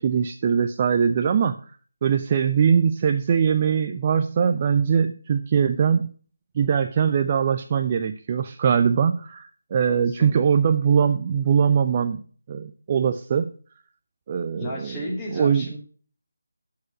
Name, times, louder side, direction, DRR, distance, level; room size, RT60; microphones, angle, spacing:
voice 1, 0.0-1.6 2.0-6.1 6.6-12.2 12.5-13.5 14.3-15.0 15.3-15.7, right 7 dB, 25° right, 7 dB, 0.4 m, -21 dB
voice 2, 9.9-10.3 14.5-15.8, left 1 dB, 10° left, -3 dB, 2.2 m, -33 dB
12.0 x 4.8 x 5.9 m, 0.42 s
figure-of-eight pair, 155°, 0 cm